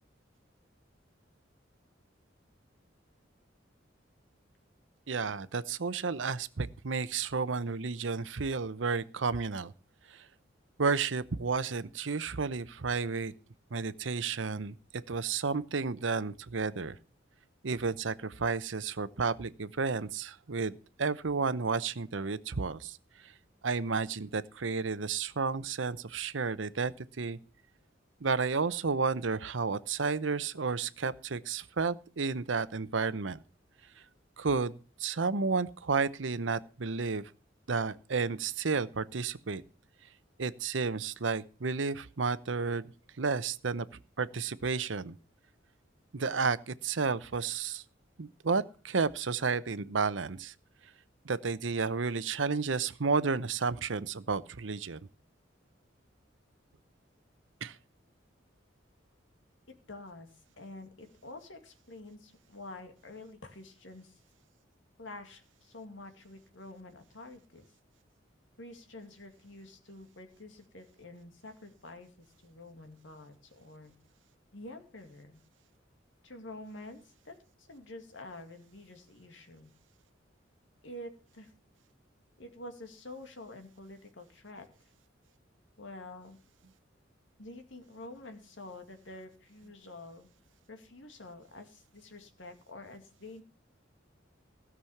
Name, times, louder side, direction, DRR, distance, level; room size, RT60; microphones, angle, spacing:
voice 1, 5.1-9.7 10.1-10.2 10.8-13.3 13.7-17.0 17.6-23.0 23.2-23.3 23.6-27.4 28.2-33.4 34.4-37.2 37.7-39.6 40.4-42.9 43.2-43.9 44.2-45.1 46.1-47.8 48.2-50.5 51.2-55.0 57.6-57.8, right 4 dB, 85° right, 15 dB, 0.8 m, -32 dB
voice 2, 59.7-60.3 60.6-64.2 65.0-67.7 68.6-73.9 74.5-75.4 76.2-79.7 80.8-81.5 82.4-84.7 85.8-86.4 87.4-90.3 90.7-93.4, left 2 dB, 80° left, 6 dB, 2.4 m, -48 dB
16.5 x 6.2 x 7.1 m, 0.37 s
head